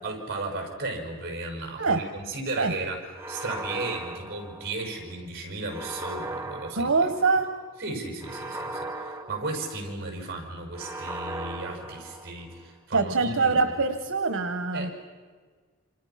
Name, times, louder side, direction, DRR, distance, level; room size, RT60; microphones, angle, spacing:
voice 1, 0.0-3.0 3.3-6.9 7.8-13.6 14.7-14.9, right 2 dB, 50° right, 2 dB, 6.0 m, -35 dB
sound 1, 3.2-5.0 5.7-7.5 8.2-10.1 10.7-12.6, right 2 dB, 10° right, 1.0 m, -38 dB
voice 2, 6.7-7.5 12.9-14.9, right 4 dB, 80° right, 8 dB, 1.3 m, -24 dB
28.5 x 26.5 x 5.9 m, 1.5 s
head